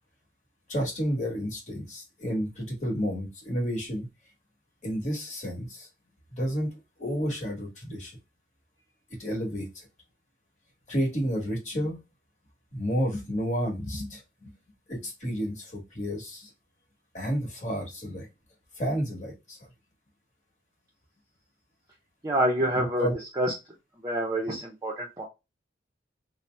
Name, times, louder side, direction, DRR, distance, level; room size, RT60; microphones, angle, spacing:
voice 1, 0.7-4.1 4.8-5.9 6.3-6.7 7.0-8.1 9.2-9.7 10.9-12.0 12.7-14.5 14.9-16.5 17.1-18.3 18.8-19.6 22.7-23.2, equal, 40° left, -2 dB, 1.2 m, -31 dB
voice 2, 22.2-23.5 24.0-25.2, right 1 dB, 20° right, -2 dB, 0.5 m, -27 dB
2.7 x 2.0 x 3.2 m, 0.24 s
head